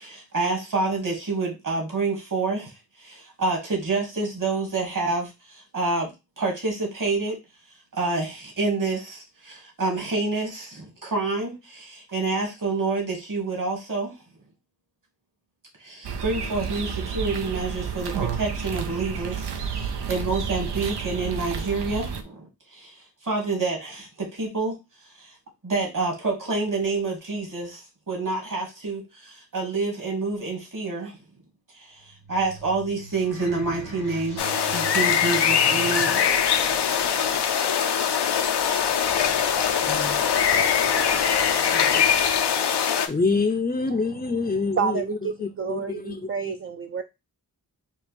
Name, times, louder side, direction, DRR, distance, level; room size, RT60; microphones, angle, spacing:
voice 1, 0.0-2.7 3.0-6.1 6.4-7.4 7.9-14.1 15.8-22.9 23.2-24.8 25.2-25.3 25.6-31.2 31.8-32.0 32.3-36.2, right 3 dB, 55° right, 2.1 m, -28 dB
sound 1, 16.0-22.2, right 6 dB, 90° right, 0.6 m, -30 dB
sound 2, 32.0-42.5, right 2 dB, 70° right, 1.8 m, -42 dB
sound 3, 34.4-43.1, left 8 dB, 90° left, 0.6 m, -22 dB
voice 2, 39.8-40.8 41.7-42.3 43.1-46.5, left 4 dB, 20° left, 0.5 m, -28 dB
voice 3, 44.8-47.0, right 6 dB, 35° right, 0.4 m, -29 dB
5.2 x 2.3 x 3.3 m
cardioid pair, 40°, 39 cm